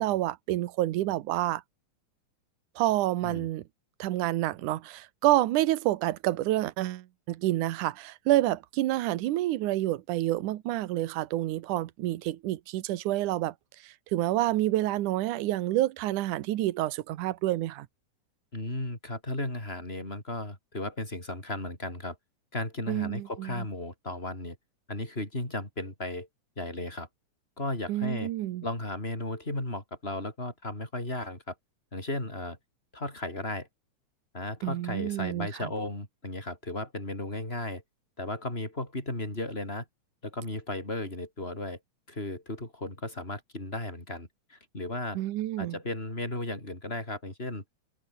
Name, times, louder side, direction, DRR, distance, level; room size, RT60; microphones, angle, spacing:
voice 1, 0.0-1.6 2.8-3.6 4.0-13.5 13.8-17.9 22.9-23.6 27.9-28.6 34.6-35.7 45.2-45.8, right 15 dB, 80° right, 2.5 m, -28 dB
voice 2, 18.5-22.2 22.5-24.6 24.9-26.3 26.6-27.1 27.6-28.3 28.6-31.5 31.9-32.6 32.9-33.7 34.3-37.8 38.2-39.9 40.2-41.8 42.1-45.2 45.6-47.6, left 1 dB, 15° left, 7.3 m, -35 dB
omnidirectional pair, 3.6 m